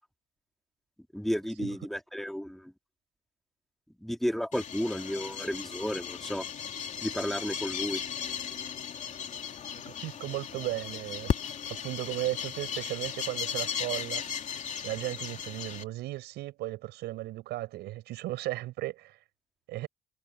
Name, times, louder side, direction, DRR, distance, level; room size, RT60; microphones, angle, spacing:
voice 1, 1.1-2.7 4.0-6.5 7.0-8.0, equal, ahead, 2.7 m, -32 dB
sound 1, 4.5-15.8, left 8 dB, 45° left, 3.1 m, -36 dB
voice 2, 9.7-11.3 11.7-14.2 14.8-19.2 19.7-19.9, right 17 dB, 85° right, 7.9 m, -36 dB
cardioid pair, 110°, 17 cm